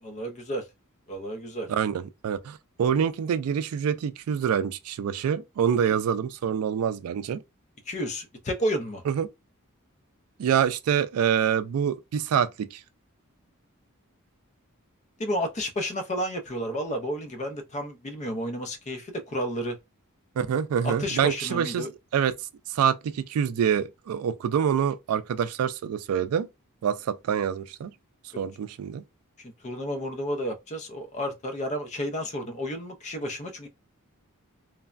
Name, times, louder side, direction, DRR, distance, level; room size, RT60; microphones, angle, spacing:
voice 1, 0.0-0.7 1.1-1.7 7.9-9.0 15.2-19.8 20.8-21.9 29.4-33.7, equal, 30° left, 0.5 m, -31 dB
voice 2, 1.7-7.4 9.1-9.3 10.4-12.8 20.4-22.3 22.7-26.5 26.8-27.9 28.4-29.0, right 8 dB, 75° right, 0.3 m, -26 dB
3.2 x 2.1 x 2.4 m
head